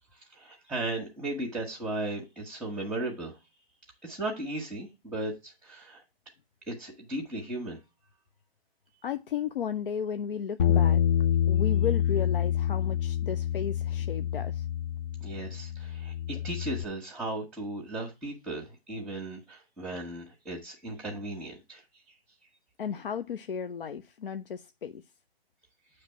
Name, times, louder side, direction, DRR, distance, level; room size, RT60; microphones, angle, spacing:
voice 1, 0.3-3.4 4.0-6.0 6.7-7.8 15.2-21.8, right 2 dB, 5° right, 1.2 m, -36 dB
voice 2, 9.0-11.0 11.5-14.6 22.8-25.0, left 7 dB, 60° left, 0.6 m, -34 dB
Bass guitar, 10.6-16.8, left 9 dB, 15° left, 0.4 m, -27 dB
8.6 x 3.2 x 5.7 m
figure-of-eight pair, 125°, 30 cm